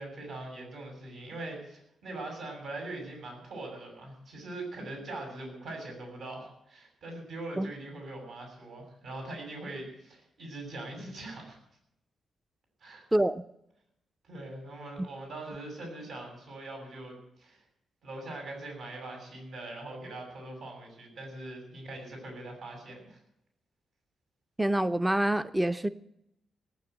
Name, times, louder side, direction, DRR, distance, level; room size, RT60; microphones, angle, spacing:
voice 1, 0.0-11.6 12.8-13.1 14.2-17.6 18.0-23.2, right 2 dB, 70° right, 2 dB, 6.9 m, -42 dB
voice 2, 13.1-13.4 24.6-25.9, right 1 dB, 10° right, 11 dB, 0.6 m, -26 dB
18.5 x 9.5 x 8.0 m, 0.79 s
cardioid pair, 120°, 0 cm